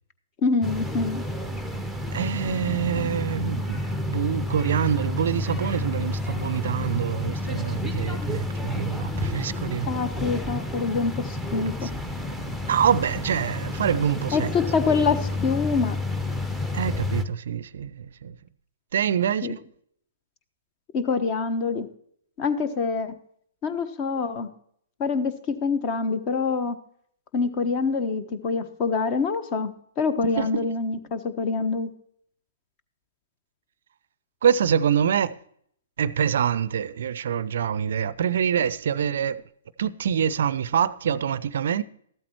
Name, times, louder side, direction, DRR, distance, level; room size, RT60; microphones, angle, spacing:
voice 1, 0.4-1.2 9.9-11.9 14.3-16.0 19.4-19.5 20.9-21.9 22.4-23.1 23.6-24.5 25.0-26.8 27.3-31.9, left 4 dB, 30° left, 1.1 m, -25 dB
sound 1, 0.6-17.2, left 1 dB, 5° left, 0.9 m, -30 dB
voice 2, 2.1-9.9 11.8-11.9 12.7-14.5 16.7-18.4 18.9-19.6 30.4-30.7 34.4-35.3 36.0-39.4 39.8-41.8, right 8 dB, 55° right, 0.5 m, -25 dB
14.0 x 12.5 x 3.0 m
figure-of-eight pair, 115°, 0 cm